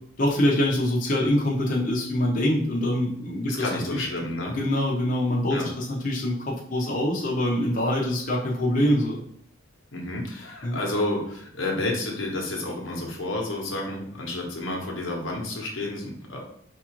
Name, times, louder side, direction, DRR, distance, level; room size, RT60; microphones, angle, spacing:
voice 1, 0.2-4.0 4.5-9.2 10.6-10.8, left 1 dB, 45° left, -3 dB, 0.7 m, -24 dB
voice 2, 3.5-4.6 5.5-5.7 9.9-16.4, left 2 dB, 85° left, -1 dB, 1.0 m, -30 dB
4.5 x 2.4 x 3.0 m, 0.65 s
head